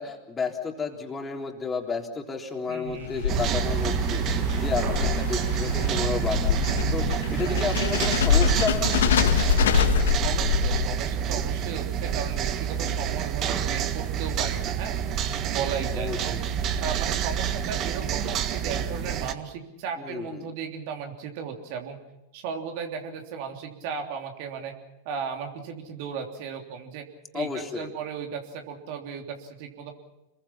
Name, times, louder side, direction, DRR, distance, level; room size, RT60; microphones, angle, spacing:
voice 1, 0.0-9.1 15.9-16.4 20.0-20.5 27.3-27.9, left 5 dB, 20° left, 2 dB, 3.6 m, -32 dB
voice 2, 2.7-3.4 7.3-7.8 10.2-15.0 15.4-16.4 16.8-22.0 22.3-24.7 25.0-27.0 27.3-29.9, right 6 dB, 55° right, 4 dB, 3.3 m, -35 dB
sound 1, 2.9-11.2, left 7 dB, 70° left, 1.6 m, -25 dB
sound 2, 3.3-19.3, right 8 dB, 40° right, 1.6 m, -28 dB
27.5 x 22.0 x 5.7 m, 0.96 s
hypercardioid pair, 95°, 0 cm